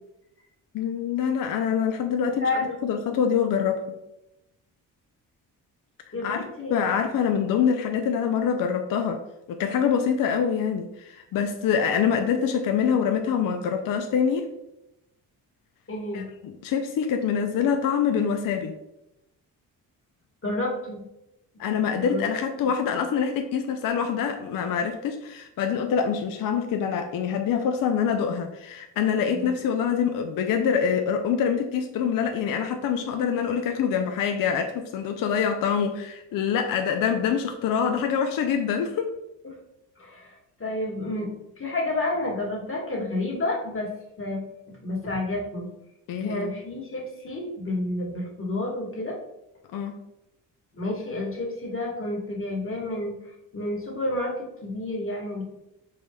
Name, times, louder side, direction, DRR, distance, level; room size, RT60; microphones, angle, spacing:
voice 1, 0.7-2.4 2.8-3.8 6.2-6.4 6.7-9.2 9.5-14.5 16.1-18.7 21.6-39.1 46.1-46.5 49.7-49.9, left 7 dB, 50° left, 5 dB, 0.5 m, -25 dB
voice 2, 2.2-2.7 6.1-6.8 15.9-16.3 20.4-21.0 21.5-21.6 22.1-22.2 29.3-29.5 40.0-40.3 40.6-41.3 41.6-43.9 44.2-45.7 46.2-49.2 50.7-53.1 53.5-55.4, left 2 dB, 30° left, -1 dB, 1.3 m, -30 dB
3.9 x 3.3 x 2.2 m, 0.89 s
supercardioid pair, 55°, 42 cm